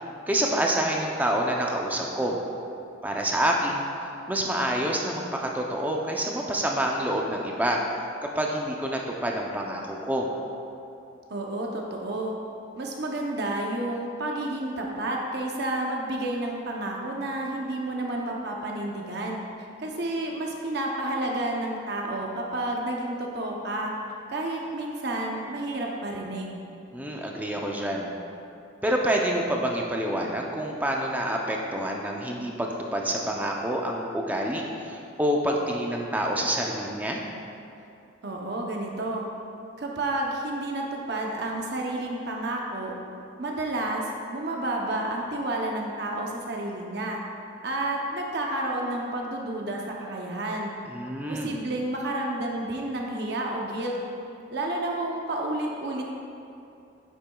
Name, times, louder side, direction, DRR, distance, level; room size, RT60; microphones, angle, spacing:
voice 1, 0.3-2.4 3.0-3.8 4.3-7.8 8.2-10.3 26.9-28.1 28.8-37.2 50.9-51.5, right 1 dB, 10° right, 0 dB, 0.5 m, -27 dB
voice 2, 11.3-12.3 12.8-19.4 19.8-23.9 24.3-26.6 38.2-39.3 39.8-42.9 43.4-47.2 47.6-50.7 51.3-54.0 54.5-56.0, right 1 dB, 55° right, -1 dB, 0.7 m, -30 dB
9.8 x 7.4 x 2.3 m, 2.7 s
head